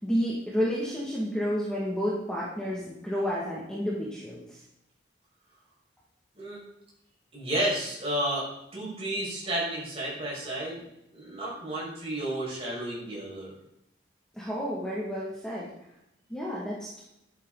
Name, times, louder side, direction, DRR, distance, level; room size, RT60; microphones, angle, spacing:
voice 1, 0.0-4.4 14.4-15.7 16.3-17.0, equal, 5° left, -6 dB, 2.4 m, -30 dB
voice 2, 7.3-8.4 8.7-10.8 11.1-13.5, right 1 dB, 30° right, -5 dB, 6.3 m, -31 dB
13.5 x 12.0 x 4.2 m, 0.84 s
head